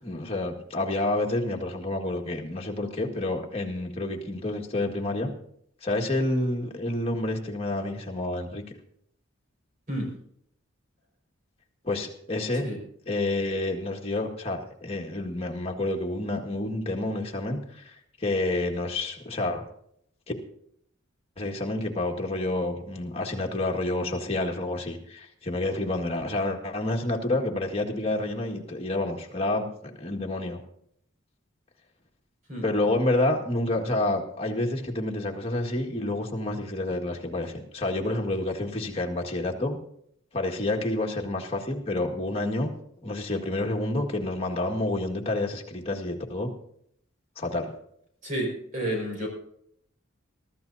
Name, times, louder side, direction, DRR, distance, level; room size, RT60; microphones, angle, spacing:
voice 1, 0.0-5.3 5.8-8.6 11.8-12.7 13.0-19.6 20.3-20.4 21.4-30.6 32.6-39.8 40.3-42.7 43.0-46.5 47.3-47.7, left 2 dB, 30° left, 1 dB, 1.8 m, -29 dB
voice 2, 48.2-49.3, right 1 dB, 40° right, 0 dB, 5.4 m, -30 dB
23.5 x 13.5 x 2.8 m, 0.69 s
head